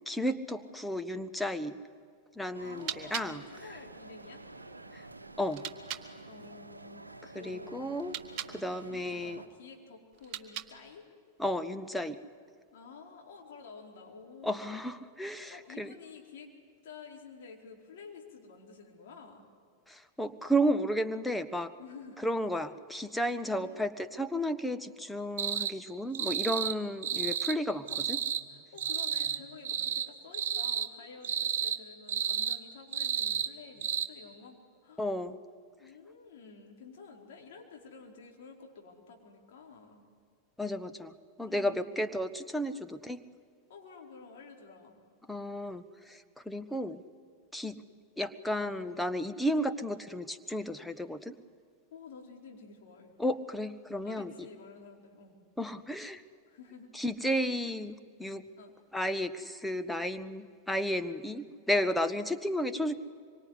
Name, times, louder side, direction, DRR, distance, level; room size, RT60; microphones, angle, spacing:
voice 1, 0.1-1.7 2.4-3.4 4.9-5.0 5.4-5.6 7.4-8.1 8.5-9.4 11.4-12.2 14.4-15.9 19.9-21.7 22.2-28.2 35.0-35.4 40.6-41.1 41.4-43.2 45.3-46.2 46.4-47.0 47.5-47.8 48.2-51.3 53.2-54.3 55.6-56.2 56.9-57.9 58.2-58.4 58.9-63.0, equal, 5° left, 9 dB, 1.2 m, -33 dB
sound 1, 2.5-9.5, right 2 dB, 80° right, 1.1 m, -49 dB
voice 2, 2.6-4.4 6.2-7.0 7.3-7.8 8.9-11.1 12.7-14.7 15.5-16.5 16.8-19.4 21.8-22.2 23.4-23.8 27.7-35.0 35.8-40.0 41.4-42.0 43.7-45.0 51.9-53.1 54.0-55.3 56.5-56.9 58.6-58.7, left 5 dB, 55° left, 0 dB, 4.6 m, -51 dB
sound 2, 2.7-6.1 7.9-8.6 10.1-11.0, right 11 dB, 40° right, 1.6 m, -43 dB
sound 3, 25.4-25.7 26.1-26.8 27.0-27.6 27.9-28.4 28.8-29.4 29.6-30.1 30.3-30.9 31.2-31.8 32.1-32.6 32.9-33.5 33.8-34.1, right 8 dB, 60° right, 1.4 m, -31 dB
25.5 x 24.0 x 9.8 m, 2.2 s
figure-of-eight pair, 90°, 0 cm